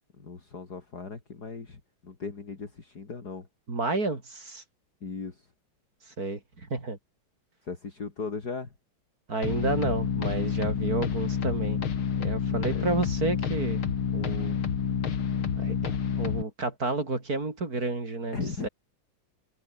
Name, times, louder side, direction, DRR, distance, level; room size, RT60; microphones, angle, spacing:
voice 1, 0.2-3.5 5.0-5.5 7.6-8.7 12.5-12.9 18.3-18.7, left 4 dB, 50° left, 3.5 m, -37 dB
voice 2, 3.7-4.6 6.2-7.0 9.3-11.8 12.2-13.8 14.1-14.6 15.6-18.7, right 3 dB, 45° right, 4.4 m, -31 dB
sound 1, 9.4-16.4, left 7 dB, 90° left, 2.8 m, -28 dB
omnidirectional pair, 2.3 m